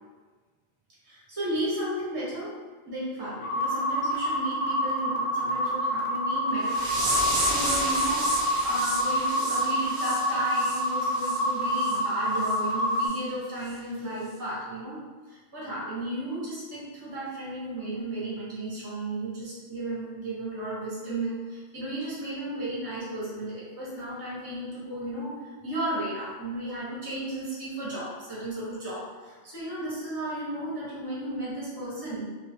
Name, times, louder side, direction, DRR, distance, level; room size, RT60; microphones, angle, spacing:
voice 1, 1.0-2.5 2.9-7.0 7.5-15.0 15.3-32.3, right 1 dB, 25° right, -8 dB, 0.9 m, -34 dB
sound 1, 3.4-13.1, equal, 60° left, 0.7 m, -27 dB
sound 2, 6.7-11.4 11.8-12.0 12.4-12.6 13.0-13.2 13.7-13.8, right 1 dB, 50° right, 0.7 m, -32 dB
2.5 x 2.3 x 2.6 m, 1.4 s
omnidirectional pair, 1.1 m